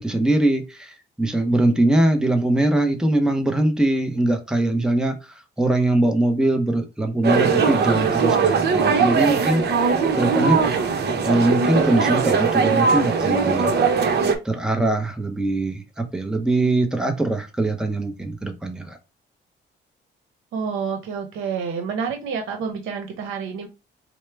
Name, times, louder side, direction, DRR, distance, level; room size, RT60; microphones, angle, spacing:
voice 1, 0.0-9.6 10.2-10.7 11.2-13.8 14.4-19.0, right 2 dB, 5° right, 0.7 m, -22 dB
sound 1, 7.2-14.3, right 5 dB, 55° right, 0.9 m, -20 dB
voice 2, 20.5-23.7, right 6 dB, 85° right, 0.8 m, -28 dB
4.5 x 2.1 x 3.3 m
cardioid pair, 90°, 20 cm